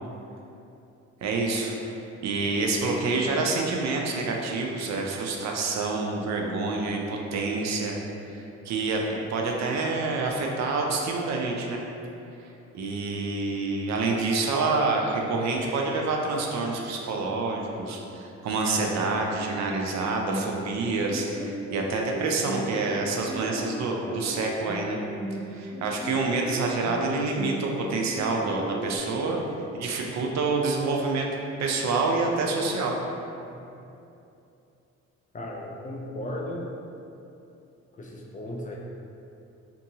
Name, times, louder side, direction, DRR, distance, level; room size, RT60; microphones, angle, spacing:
voice 1, 1.2-8.0 8.3-11.8 12.4-12.5 12.7-25.0 25.5-29.4 29.7-31.3 31.6-32.9, right 3 dB, 65° right, 0 dB, 0.5 m, -27 dB
sound 1, 20.3-29.0, right 1 dB, 10° right, 1.3 m, -37 dB
voice 2, 35.3-36.7 38.0-38.8, left 1 dB, 25° left, -2 dB, 0.4 m, -36 dB
2.6 x 2.6 x 2.7 m, 2.7 s
cardioid pair, 90°, 30 cm